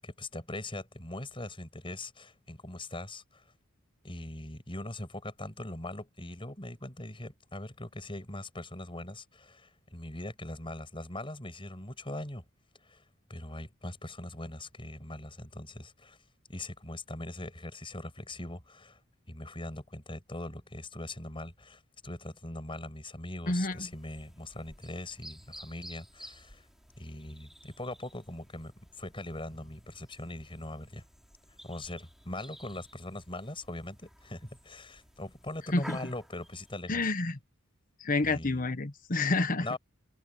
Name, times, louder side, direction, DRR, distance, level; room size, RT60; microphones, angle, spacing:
voice 1, 0.0-3.5 4.0-12.4 12.8-13.0 13.3-16.2 16.5-19.0 19.3-26.7 27.0-31.0 31.6-37.1 38.2-38.6 39.6-39.8, left 1 dB, 25° left, 7.5 m, -41 dB
voice 2, 23.5-23.9 35.7-36.0 36.9-37.4 38.0-39.7, left 2 dB, 40° left, 1.3 m, -29 dB
sound 1, 23.6-36.8, equal, ahead, 6.2 m, -53 dB
head